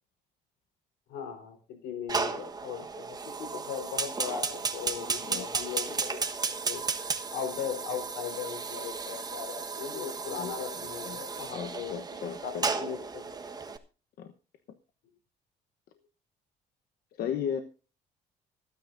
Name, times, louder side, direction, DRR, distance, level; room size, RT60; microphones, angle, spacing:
voice 1, 1.1-6.8 7.3-13.8, left 8 dB, 90° left, 4.0 m, -39 dB
Fire, 2.1-13.8, right 4 dB, 25° right, 1.3 m, -34 dB
voice 2, 5.0-5.5 10.4-10.5 11.0-11.2 11.5-12.6 14.2-14.3 17.2-17.6, left 8 dB, 65° left, 1.1 m, -35 dB
25.5 x 9.6 x 2.6 m
cardioid pair, 110°, 17 cm